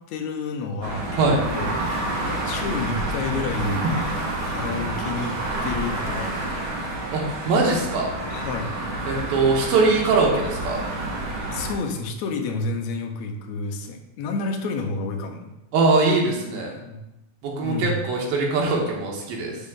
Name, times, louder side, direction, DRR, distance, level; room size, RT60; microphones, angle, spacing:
voice 1, 0.1-1.3 1.5-1.7 2.4-4.1 4.4-5.4 5.6-6.6 8.3-8.7 11.5-15.5 16.8-17.0 17.6-18.0, left 3 dB, 75° left, 4 dB, 1.8 m, -29 dB
sound 1, 0.8-11.7, right 1 dB, 55° right, 1.4 m, -29 dB
voice 2, 7.1-8.1 9.1-10.8 15.7-16.8 17.4-19.6, right 3 dB, 90° right, -1 dB, 3.1 m, -22 dB
10.5 x 4.4 x 3.7 m, 0.95 s
omnidirectional pair, 4.1 m